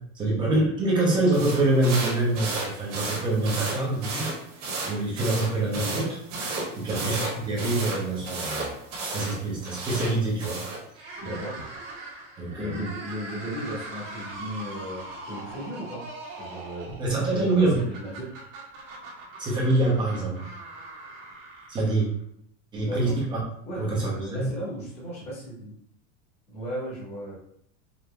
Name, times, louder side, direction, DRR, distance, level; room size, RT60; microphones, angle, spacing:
voice 1, 0.1-4.3 4.9-6.2 6.7-7.2 7.4-8.7 9.1-10.6 10.9-11.3 12.4-12.9 17.0-17.8 19.4-20.5 21.7-22.1 22.7-23.4 23.8-24.5, right 2 dB, 10° right, -4 dB, 0.6 m, -25 dB
sound 1, 1.3-10.8, right 3 dB, 35° right, 1.3 m, -33 dB
sound 2, 10.9-22.2, right 2 dB, 75° right, 1.3 m, -41 dB
voice 2, 11.2-11.6 12.5-16.0 16.4-18.3 22.8-23.1 23.6-25.7 26.5-27.3, equal, 15° left, -7 dB, 1.0 m, -36 dB
5.1 x 2.7 x 2.2 m, 0.71 s
supercardioid pair, 175°, 38 cm